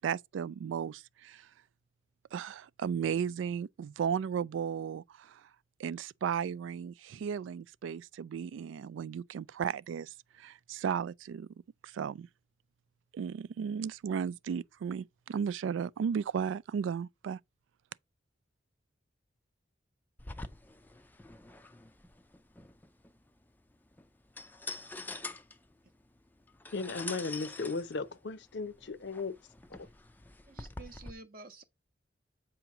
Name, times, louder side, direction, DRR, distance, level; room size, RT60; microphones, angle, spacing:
voice 1, 0.0-1.5 2.3-5.4 5.8-11.5 11.8-12.3 13.1-17.4, right 7 dB, 80° right, 0.3 m, -35 dB
sound 1, 20.2-31.1, left 3 dB, 10° left, 0.4 m, -46 dB
voice 2, 26.7-29.3 29.7-29.9, left 3 dB, 65° left, 0.6 m, -36 dB
voice 3, 30.5-31.6, right 3 dB, 50° right, 0.7 m, -50 dB
7.8 x 2.9 x 5.8 m
head